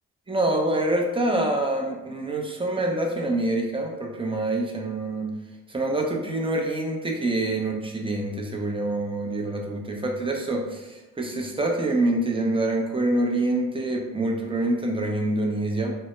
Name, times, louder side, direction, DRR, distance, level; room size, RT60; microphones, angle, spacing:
voice 1, 0.3-5.3 5.7-15.9, right 2 dB, 15° right, 0 dB, 0.6 m, -26 dB
2.1 x 2.1 x 3.0 m, 1.1 s
supercardioid pair, 50°, 33 cm